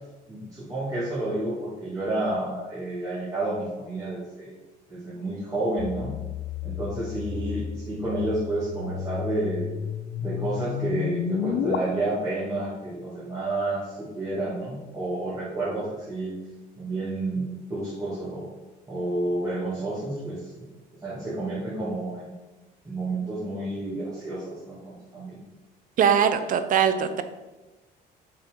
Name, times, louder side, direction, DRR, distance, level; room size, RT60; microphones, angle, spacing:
voice 1, 0.3-4.6 4.9-6.2 6.6-9.8 10.2-16.4 16.8-18.5 18.9-20.4 21.0-22.3 22.8-25.4, right 2 dB, 20° right, -9 dB, 2.5 m, -30 dB
sound 1, 5.8-11.8, left 9 dB, 75° left, 0.6 m, -32 dB
voice 2, 26.0-27.2, right 8 dB, 55° right, 10 dB, 0.7 m, -21 dB
6.7 x 4.6 x 5.2 m, 1.1 s
cardioid pair, 110°, 17 cm